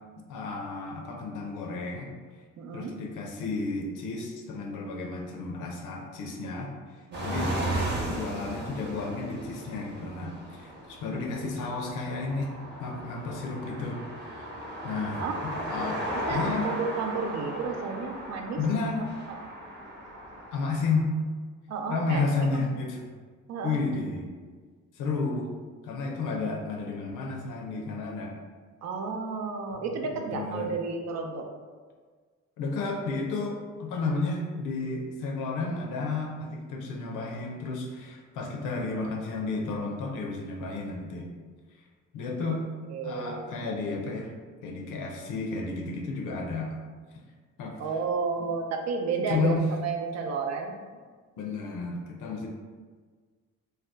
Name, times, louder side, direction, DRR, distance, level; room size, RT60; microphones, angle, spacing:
voice 1, 0.3-2.1 2.7-6.7 7.2-7.5 7.9-12.5 12.8-14.5 14.8-16.0 16.3-16.7 18.6-19.1 20.5-21.1 21.9-23.0 23.6-24.3 25.0-25.5 25.8-28.3 29.8-29.9 30.1-30.7 32.6-41.3 42.1-42.6 43.0-44.3 44.6-46.8 47.6-47.8 49.1-49.7 51.4-52.5, left 3 dB, 90° left, 1 dB, 0.6 m, -32 dB
voice 2, 2.6-2.9 7.1-7.5 15.2-15.4 16.3-18.6 19.3-19.4 21.7-22.7 23.5-23.8 28.8-31.5 42.9-43.4 47.8-50.7, right 5 dB, 60° right, 3 dB, 0.5 m, -32 dB
sound 1, 7.1-21.0, right 1 dB, 35° right, 0.9 m, -36 dB
2.8 x 2.2 x 3.4 m, 1.5 s
cardioid pair, 90°, 30 cm